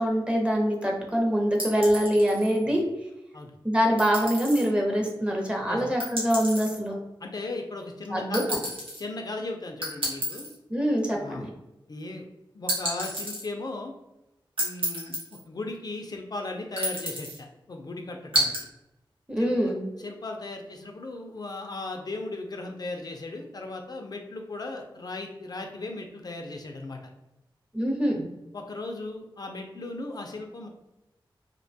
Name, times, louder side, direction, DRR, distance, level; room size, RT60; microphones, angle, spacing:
voice 1, 0.0-2.8 3.6-6.9 8.1-8.6 10.7-11.5 19.3-19.8 27.7-28.3, equal, 10° right, 0 dB, 0.6 m, -24 dB
sound 1, 1.6-2.6 4.0-4.7 6.0-6.8 8.3-9.0 9.8-10.6 12.7-13.4 14.6-15.4 16.8-17.4 18.3-18.6, right 1 dB, 80° right, 1.0 m, -30 dB
voice 2, 7.2-8.4 9.0-10.5 11.1-11.5 11.9-12.2 12.5-13.9 14.6-18.5 19.4-19.5 20.0-27.0 28.5-30.7, left 2 dB, 50° left, 3 dB, 0.3 m, -37 dB
2.6 x 2.1 x 2.6 m, 0.92 s
wide cardioid pair, 90°, 9 cm